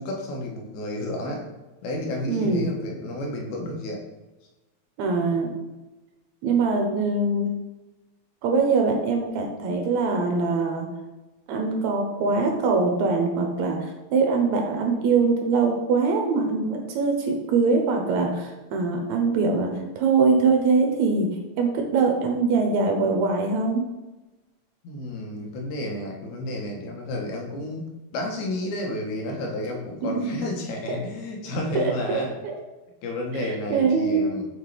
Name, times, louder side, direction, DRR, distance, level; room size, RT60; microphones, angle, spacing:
voice 1, 0.0-1.5 1.8-4.0 24.8-27.9 28.1-32.4 33.0-34.5, left 1 dB, 85° left, 1 dB, 2.4 m, -31 dB
voice 2, 2.3-2.7 5.0-5.5 6.4-7.5 8.4-10.8 11.5-21.3 21.6-23.8 30.0-30.3 31.8-32.6 33.3-34.3, right 4 dB, 80° right, 2 dB, 2.2 m, -23 dB
7.2 x 4.0 x 3.3 m, 1.1 s
omnidirectional pair, 3.4 m